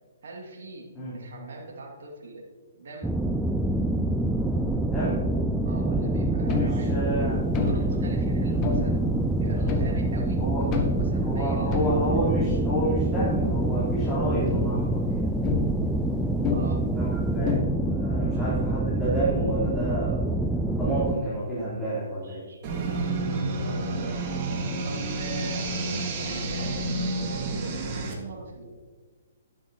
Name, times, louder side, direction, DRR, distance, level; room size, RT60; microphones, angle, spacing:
voice 1, 0.2-2.5 2.8-3.2 5.6-9.0 9.4-12.2 16.5-16.9 18.2-18.5 22.2-22.6 22.9-24.2 24.8-27.8 28.2-28.7, right 3 dB, 60° right, -1 dB, 2.4 m, -42 dB
sound 1, 3.0-21.1, right 1 dB, 5° right, 0.4 m, -26 dB
voice 2, 4.8-5.3 6.5-7.4 10.4-10.6 11.2-15.3 16.9-20.3 20.8-22.5, right 1 dB, 15° left, -10 dB, 3.6 m, -30 dB
sound 2, 6.5-13.4 13.7-13.8 14.1-17.6, left 3 dB, 30° left, 1.3 m, -31 dB
sound 3, 22.6-28.1, right 2 dB, 35° right, 1.9 m, -29 dB
11.5 x 11.0 x 3.0 m, 1.4 s
figure-of-eight pair, 125°, 0 cm